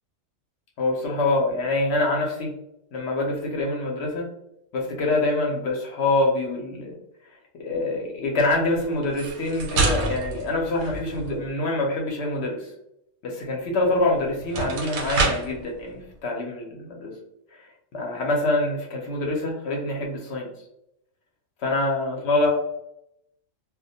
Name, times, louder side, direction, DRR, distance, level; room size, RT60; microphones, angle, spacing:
voice 1, 0.8-2.5 2.9-4.3 4.7-7.0 7.6-12.7 13.2-17.1 17.5-17.6 17.9-20.5 21.6-22.5, left 2 dB, 65° left, -1 dB, 0.7 m, -25 dB
sound 1, 9.0-11.4 13.9-14.0 14.4-15.6, right 3 dB, 85° right, 1.0 m, -27 dB
2.2 x 2.1 x 2.7 m, 0.80 s
omnidirectional pair, 1.4 m